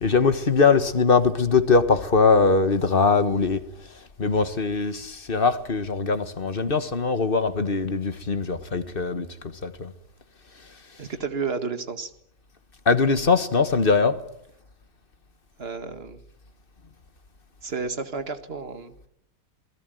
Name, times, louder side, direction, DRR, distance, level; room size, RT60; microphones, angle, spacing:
voice 1, 0.0-3.6 4.2-9.3 9.6-9.9 12.9-14.2, left 4 dB, 35° left, 1.5 m, -21 dB
voice 2, 11.0-12.1 15.6-16.2 17.6-19.1, right 5 dB, 40° right, 2.1 m, -31 dB
28.0 x 21.0 x 9.3 m
omnidirectional pair, 1.7 m